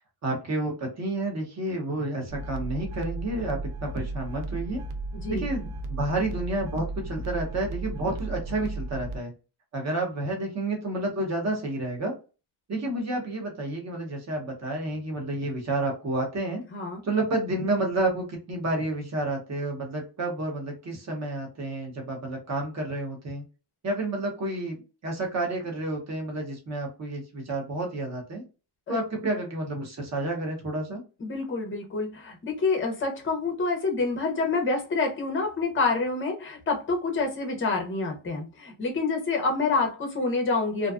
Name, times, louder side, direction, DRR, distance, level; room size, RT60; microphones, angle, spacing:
voice 1, 0.2-4.8 5.3-9.3 9.7-12.1 12.7-16.6 17.0-23.4 23.8-24.8 25.0-28.4 28.9-31.0, right 2 dB, 35° right, 1 dB, 0.8 m, -30 dB
sound 1, 2.3-9.2, right 2 dB, 85° right, 0.6 m, -35 dB
voice 2, 5.1-5.5 16.7-17.0 28.9-29.0 31.2-40.9, left 3 dB, 25° left, 3 dB, 0.5 m, -27 dB
2.5 x 2.2 x 2.3 m, 0.33 s
wide cardioid pair, 175°, 48 cm